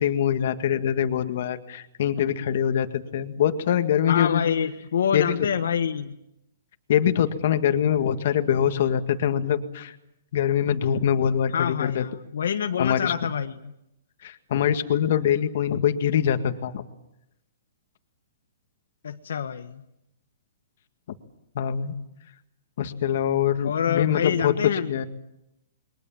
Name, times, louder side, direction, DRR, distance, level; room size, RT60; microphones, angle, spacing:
voice 1, 0.0-4.4 5.1-5.3 6.9-9.9 10.3-12.1 12.8-13.1 14.2-16.8 21.6-21.9 22.8-24.5 24.9-25.0, left 9 dB, 45° left, 8 dB, 1.8 m, -23 dB
voice 2, 4.1-6.1 11.5-13.7 19.0-19.8 23.6-24.9, left 8 dB, 70° left, 7 dB, 1.4 m, -26 dB
28.5 x 23.0 x 7.3 m, 0.84 s
hypercardioid pair, 180°, 0 cm